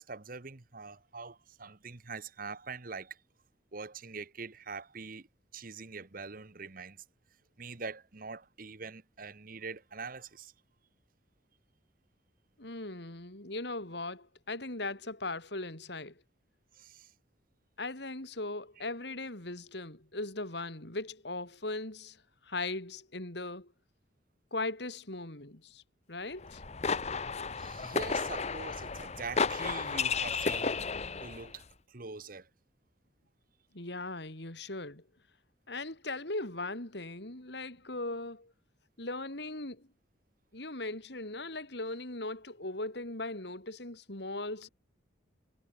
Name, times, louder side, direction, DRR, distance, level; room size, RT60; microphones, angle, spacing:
voice 1, 0.0-3.2 3.7-5.3 5.5-7.0 7.6-10.5 16.7-17.1 27.4-30.9 31.2-32.5, right 4 dB, 45° right, 1.2 m, -44 dB
voice 2, 12.6-16.1 17.8-22.2 22.4-23.7 24.5-25.8 26.1-26.6 33.7-35.0 35.7-38.5 39.0-39.9 40.5-44.7, left 2 dB, 60° left, 3.2 m, -39 dB
sound 1, 26.4-31.5, left 5 dB, 35° left, 0.8 m, -33 dB
head